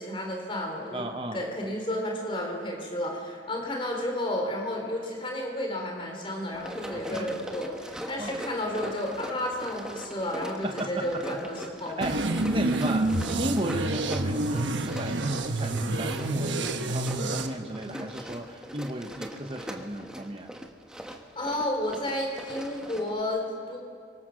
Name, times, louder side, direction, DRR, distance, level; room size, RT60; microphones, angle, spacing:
voice 1, 0.0-1.1 1.3-12.2 21.4-23.8, left 1 dB, 30° left, 1 dB, 3.7 m, -32 dB
voice 2, 0.9-1.4 6.9-7.3 8.2-8.4 10.6-11.0 11.8-12.2 12.5-20.5, right 1 dB, 30° right, 3 dB, 1.2 m, -34 dB
Run, 6.5-23.2, equal, 5° right, 1.3 m, -41 dB
sound 1, 12.0-17.5, right 2 dB, 90° right, 1.2 m, -28 dB
27.0 x 24.0 x 6.4 m, 2.3 s
head